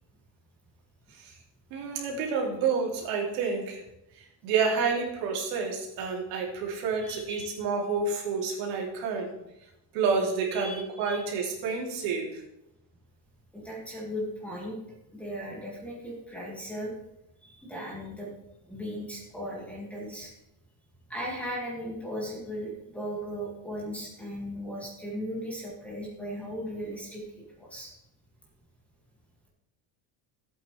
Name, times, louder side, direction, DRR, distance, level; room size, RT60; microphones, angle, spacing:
voice 1, 1.7-3.8 4.2-9.3 9.9-12.4, right 5 dB, 70° right, 0 dB, 2.8 m, -29 dB
voice 2, 7.0-7.5 10.5-11.2 13.5-14.8 15.1-16.9 17.4-18.3 18.6-20.3 21.1-27.9, equal, 5° left, -4 dB, 2.1 m, -37 dB
13.5 x 8.6 x 3.3 m, 0.87 s
cardioid pair, 180°, 49 cm